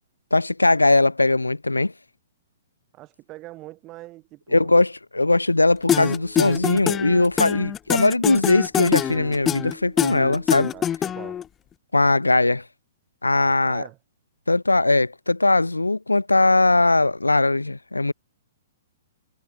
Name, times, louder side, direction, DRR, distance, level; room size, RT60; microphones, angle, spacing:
voice 1, 0.3-1.9 4.5-10.7 11.9-12.6 13.2-13.8 14.5-18.1, left 2 dB, 90° left, 0.5 m, -20 dB
voice 2, 2.9-4.8 10.7-11.4 13.4-14.0, right 18 dB, 30° right, 7.0 m, -43 dB
sound 1, 5.9-11.4, left 9 dB, 20° left, 2.8 m, -24 dB
figure-of-eight pair, 120°, 0 cm